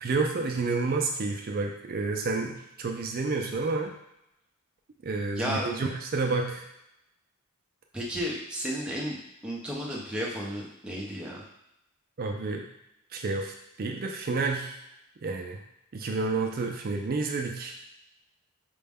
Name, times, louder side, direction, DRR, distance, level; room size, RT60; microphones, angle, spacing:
voice 1, 0.0-3.9 5.0-6.6 12.2-12.6 13.1-14.8 15.2-15.6 15.9-17.8, right 3 dB, 45° right, 2 dB, 0.4 m, -30 dB
voice 2, 5.4-5.7 7.9-11.4, equal, 5° right, -4 dB, 0.7 m, -33 dB
5.0 x 2.2 x 3.5 m, 0.83 s
head